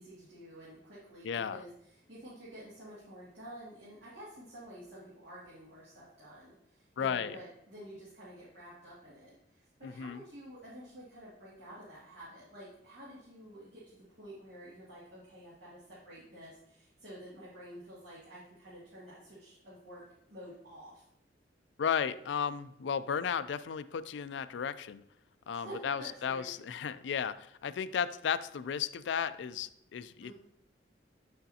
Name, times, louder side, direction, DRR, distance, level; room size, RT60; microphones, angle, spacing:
voice 1, 0.0-20.0 20.3-21.0 25.5-26.5 30.2-30.3, right 1 dB, 75° right, -8 dB, 2.3 m, -50 dB
voice 2, 1.2-1.6 7.0-7.4 9.8-10.2 21.8-25.0 25.5-30.3, left 7 dB, 85° left, 14 dB, 0.4 m, -34 dB
8.9 x 6.3 x 2.8 m, 0.81 s
head